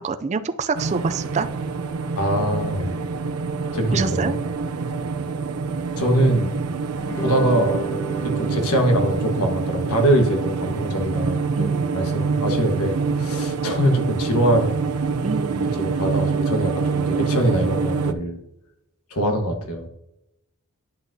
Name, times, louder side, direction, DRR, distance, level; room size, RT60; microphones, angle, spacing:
voice 1, 0.0-1.5 3.9-4.3 11.6-12.1 15.2-15.7, right 4 dB, 30° right, 11 dB, 0.4 m, -26 dB
sound 1, 0.7-18.1, right 4 dB, 90° right, 0.6 m, -26 dB
voice 2, 2.1-2.9 3.7-4.4 6.0-6.6 7.2-7.9 8.2-14.7 15.7-18.4 19.1-19.9, right 1 dB, 85° left, 4 dB, 1.4 m, -23 dB
sound 2, 7.0-13.5, right 4 dB, 15° left, 2.0 m, -35 dB
10.5 x 6.0 x 2.7 m, 0.85 s
head